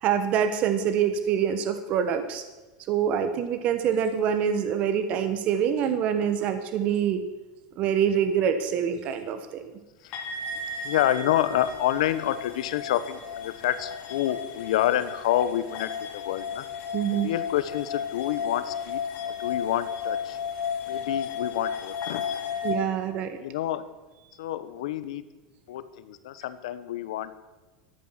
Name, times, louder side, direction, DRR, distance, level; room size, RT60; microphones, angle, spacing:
voice 1, 0.0-2.4 2.9-7.2 7.8-9.7 16.9-17.3 22.6-23.4, right 8 dB, 40° right, 9 dB, 1.1 m, -25 dB
sound 1, 10.1-22.7, left 6 dB, 45° left, 2.7 m, -34 dB
voice 2, 10.8-16.6 17.2-20.4 20.9-22.5 23.3-23.8 24.4-25.2 25.7-27.3, left 12 dB, 90° left, 13 dB, 1.1 m, -28 dB
13.0 x 9.3 x 7.5 m, 1.2 s
supercardioid pair, 155°, 3 cm